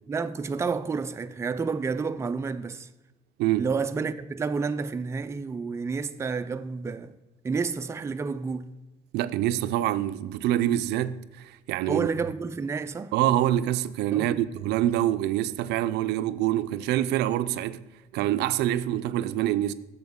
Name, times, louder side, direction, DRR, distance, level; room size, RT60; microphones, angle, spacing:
voice 1, 0.1-2.9 3.6-7.1 7.4-8.7 11.9-13.1 14.1-14.4, right 5 dB, 15° right, 0.4 m, -30 dB
voice 2, 9.1-12.1 13.1-17.8 18.1-19.7, right 13 dB, 80° right, 0.4 m, -26 dB
7.8 x 7.0 x 3.6 m
cardioid pair, 110°, 17 cm